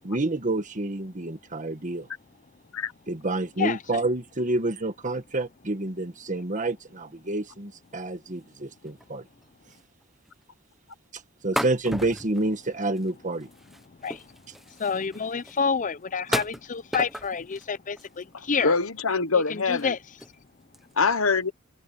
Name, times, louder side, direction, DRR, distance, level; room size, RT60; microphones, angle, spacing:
voice 1, 0.0-2.1 3.1-9.2 11.4-13.5 16.3-16.4, right 2 dB, 40° right, 1.5 m, -28 dB
sound 1, 8.9-9.1 9.4-9.5 9.7-10.0 10.3-10.4 11.6-13.1 13.4-15.6 16.3-17.7 18.0-18.6 19.1-19.2 19.6-19.9 20.2-20.4 20.7-20.9, equal, ahead, 1.0 m, -35 dB
voice 2, 14.8-18.7 19.5-20.0, left 5 dB, 40° left, 0.7 m, -28 dB
voice 3, 18.6-19.9 21.0-21.5, left 4 dB, 80° left, 1.3 m, -24 dB
head